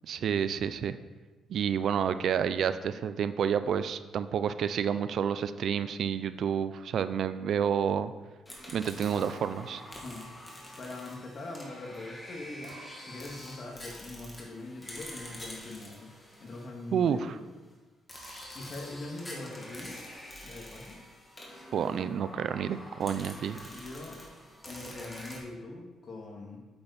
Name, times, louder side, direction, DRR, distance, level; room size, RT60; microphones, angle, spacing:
voice 1, 0.1-0.9 1.5-8.1 8.7-9.8 16.9-17.3 21.7-23.6, right 8 dB, 65° right, 13 dB, 0.4 m, -29 dB
sound 1, 8.4-17.3 18.1-25.4, left 1 dB, 15° left, 2.1 m, -46 dB
voice 2, 10.8-17.5 18.5-20.0 20.4-21.0 23.7-24.2 24.7-26.6, left 2 dB, 45° left, 1 dB, 2.0 m, -42 dB
8.7 x 7.9 x 4.2 m, 1.2 s
cardioid pair, 90°, 0 cm